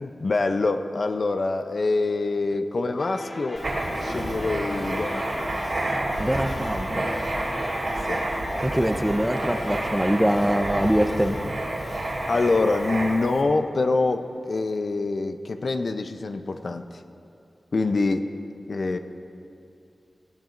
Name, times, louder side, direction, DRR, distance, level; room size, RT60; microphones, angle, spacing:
voice 1, 0.0-3.6 4.0-5.6 8.1-8.2 12.3-16.8 17.7-18.3 18.7-19.0, left 3 dB, 65° left, 7 dB, 0.6 m, -25 dB
sound 1, 3.0-13.9, left 1 dB, 50° left, 1.2 m, -38 dB
Writing, 3.6-13.4, right 1 dB, 70° right, 3.3 m, -29 dB
voice 2, 6.2-7.1 8.6-11.5, equal, 10° right, 7 dB, 0.7 m, -24 dB
17.5 x 15.5 x 2.6 m, 2.6 s
cardioid pair, 50°, 0 cm